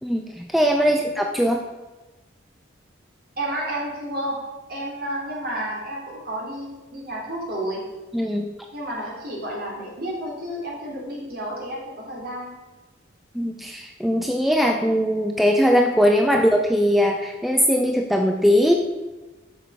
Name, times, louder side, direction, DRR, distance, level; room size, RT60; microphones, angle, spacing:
voice 1, 0.0-1.6 8.1-8.5 13.3-18.7, equal, ahead, 2 dB, 0.4 m, -20 dB
voice 2, 3.4-4.4 4.7-7.8 8.7-12.5, right 1 dB, 50° right, -3 dB, 2.8 m, -31 dB
7.5 x 6.3 x 5.3 m, 1.2 s
head